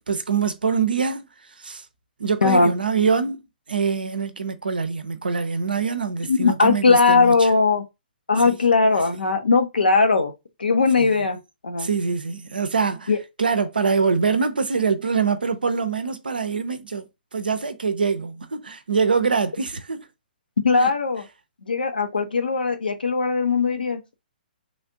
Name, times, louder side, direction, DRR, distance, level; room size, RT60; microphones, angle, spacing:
voice 1, 0.1-1.3 1.6-1.8 2.2-3.4 3.7-7.5 8.5-8.6 9.1-9.2 11.0-11.3 11.8-13.1 13.4-17.1 17.3-20.1 20.8-20.9, right 5 dB, 75° right, 0.5 m, -24 dB
voice 2, 2.4-2.7 6.3-7.8 8.3-10.3 10.6-11.4 11.6-11.9 13.1-13.2 20.6-21.3 21.6-24.0, left 4 dB, 75° left, 0.7 m, -19 dB
3.2 x 2.4 x 2.6 m
figure-of-eight pair, 120°, 5 cm